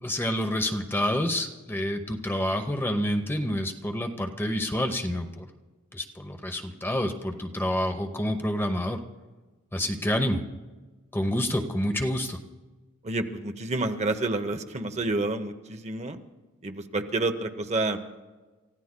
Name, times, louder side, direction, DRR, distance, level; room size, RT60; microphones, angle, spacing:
voice 1, 0.0-5.5 5.9-9.0 9.7-10.4 11.1-12.4, left 1 dB, 10° left, 6 dB, 0.8 m, -28 dB
voice 2, 13.0-16.2 16.6-18.0, right 2 dB, 35° right, 7 dB, 0.8 m, -29 dB
29.5 x 15.0 x 2.2 m, 1.3 s
head